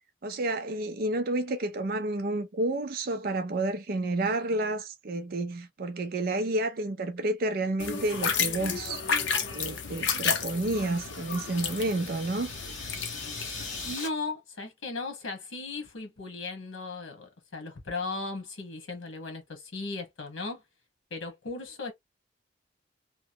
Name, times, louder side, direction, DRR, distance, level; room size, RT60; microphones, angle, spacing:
voice 1, 0.2-9.1 9.5-12.5, right 2 dB, 50° right, 0.4 m, -30 dB
sound 1, 7.8-13.9, left 6 dB, 65° left, 0.7 m, -32 dB
sound 2, 10.1-14.1, left 3 dB, 40° left, 1.8 m, -42 dB
voice 2, 13.8-20.6 21.1-21.9, left 3 dB, 85° left, 1.2 m, -37 dB
3.0 x 2.2 x 2.7 m
head